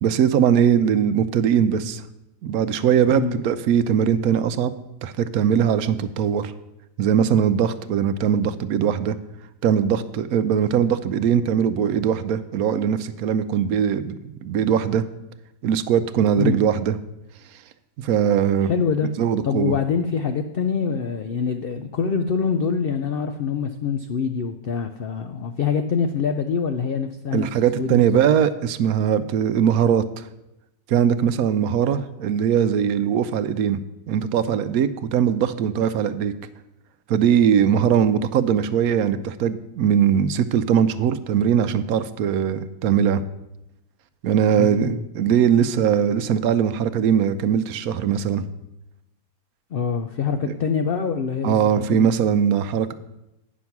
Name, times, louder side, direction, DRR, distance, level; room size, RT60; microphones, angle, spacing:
voice 1, 0.0-2.0 2.4-4.7 5.0-6.5 7.0-9.2 9.6-15.0 15.6-17.0 18.0-18.7 19.2-19.7 27.3-30.3 30.9-33.8 34.1-36.3 37.1-43.2 44.2-48.4 51.4-52.9, right 8 dB, 75° right, 12 dB, 1.0 m, -20 dB
voice 2, 3.1-3.4 16.4-16.6 18.6-19.1 19.4-28.2 44.6-45.0 49.7-52.1, left 6 dB, 75° left, 7 dB, 0.5 m, -25 dB
9.4 x 6.2 x 5.8 m, 0.89 s
omnidirectional pair, 1.6 m